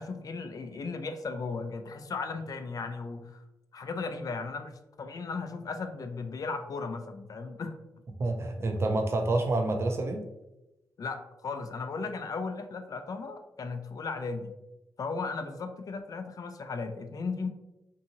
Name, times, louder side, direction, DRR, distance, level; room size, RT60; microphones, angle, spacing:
voice 1, 0.0-3.4 3.7-7.8 11.0-14.5 15.0-17.5, left 4 dB, 55° left, 7 dB, 0.4 m, -36 dB
voice 2, 8.2-10.2, right 2 dB, 35° right, 4 dB, 0.4 m, -28 dB
2.7 x 2.6 x 2.7 m, 0.96 s
cardioid pair, 60°, 7 cm